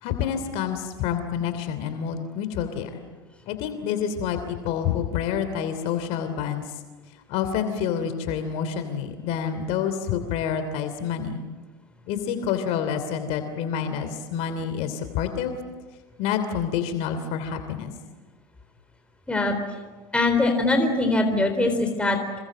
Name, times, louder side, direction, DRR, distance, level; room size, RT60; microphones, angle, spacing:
voice 1, 0.0-3.0 3.5-6.7 7.3-11.4 12.1-15.6 16.2-17.9, left 8 dB, 60° left, 9 dB, 3.0 m, -28 dB
voice 2, 20.1-22.4, left 2 dB, 10° left, 4 dB, 4.0 m, -22 dB
27.5 x 24.0 x 7.7 m, 1.3 s
hypercardioid pair, 100°, 13 cm